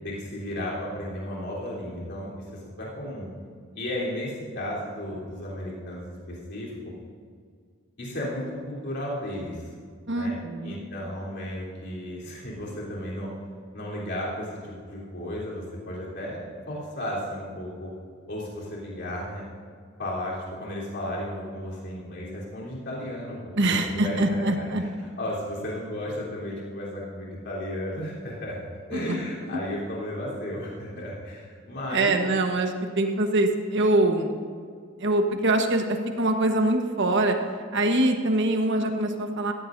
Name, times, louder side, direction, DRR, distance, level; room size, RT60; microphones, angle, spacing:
voice 1, 0.0-3.3 3.7-6.9 8.0-9.6 10.1-13.3 13.7-17.9 18.3-19.4 20.0-24.7 25.2-28.6 28.9-32.1, left 1 dB, 55° left, -6 dB, 3.6 m, -34 dB
voice 2, 10.1-10.9 23.6-24.8 28.9-29.2 31.9-34.4 35.0-37.4 37.7-39.5, right 2 dB, 55° right, 4 dB, 1.2 m, -24 dB
16.5 x 15.0 x 2.7 m, 2.1 s
head